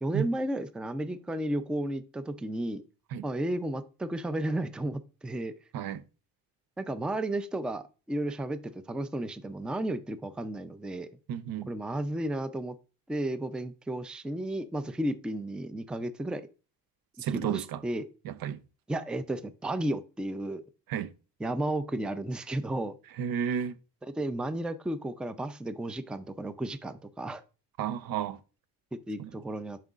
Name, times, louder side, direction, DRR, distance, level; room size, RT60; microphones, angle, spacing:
voice 1, 0.0-2.8 3.2-5.5 6.8-11.1 11.7-12.7 13.1-16.5 17.3-18.1 18.9-20.6 21.4-23.0 24.2-27.4 29.1-29.8, right 1 dB, 5° right, 0.4 m, -33 dB
voice 2, 11.3-11.7 17.2-17.8 18.2-18.6 20.9-21.1 23.2-23.7 27.8-28.4 29.2-29.3, right 8 dB, 70° right, 0.6 m, -32 dB
7.6 x 5.5 x 2.4 m
cardioid pair, 85°, 37 cm